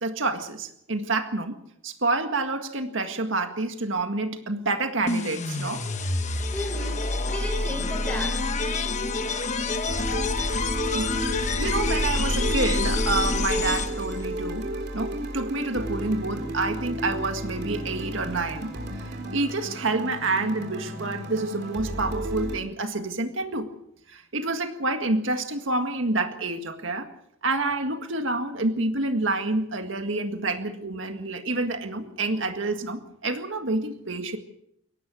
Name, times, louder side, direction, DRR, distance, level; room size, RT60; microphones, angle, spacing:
voice 1, 0.0-1.6 1.8-5.8 10.9-11.2 11.6-14.7 14.9-23.7 24.1-27.1 27.4-34.4, right 2 dB, 70° right, 6 dB, 1.9 m, -28 dB
sound 1, 5.1-14.2, left 3 dB, 35° left, 1.2 m, -27 dB
voice 2, 6.5-8.7, left 1 dB, 5° left, 4 dB, 5.4 m, -35 dB
sound 2, 9.9-22.6, right 1 dB, 50° right, 3.8 m, -32 dB
22.5 x 18.0 x 6.3 m, 0.74 s
head